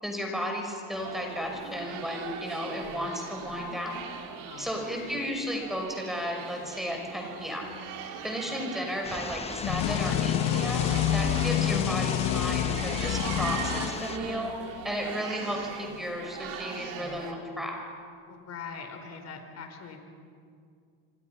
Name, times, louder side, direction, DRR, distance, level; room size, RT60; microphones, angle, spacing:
voice 1, 0.0-4.0 4.6-7.7 8.2-14.5 14.8-17.8, equal, ahead, 1 dB, 5.6 m, -34 dB
sound 1, 0.9-17.3, right 7 dB, 70° right, 2.9 m, -40 dB
voice 2, 4.4-4.9 18.3-20.0, left 5 dB, 50° left, 5 dB, 4.4 m, -42 dB
sound 2, 9.0-14.2, left 4 dB, 20° left, 1.0 m, -38 dB
sound 3, 9.6-14.5, left 12 dB, 65° left, 1.2 m, -28 dB
27.0 x 25.0 x 5.8 m, 2.3 s
cardioid pair, 105°, 34 cm